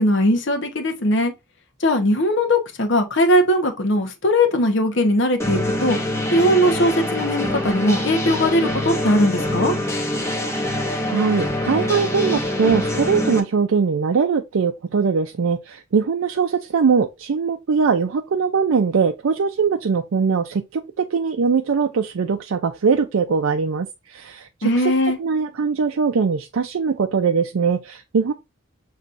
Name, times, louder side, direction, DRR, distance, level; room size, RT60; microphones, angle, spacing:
voice 1, 0.0-1.3 1.8-6.0 6.3-9.7 24.6-25.2, left 1 dB, 60° left, 1.0 m, -19 dB
sound 1, 5.4-13.4, left 1 dB, 15° left, 0.8 m, -24 dB
voice 2, 11.1-24.9 25.2-28.3, right 5 dB, 90° right, 0.4 m, -21 dB
6.8 x 3.0 x 2.5 m
head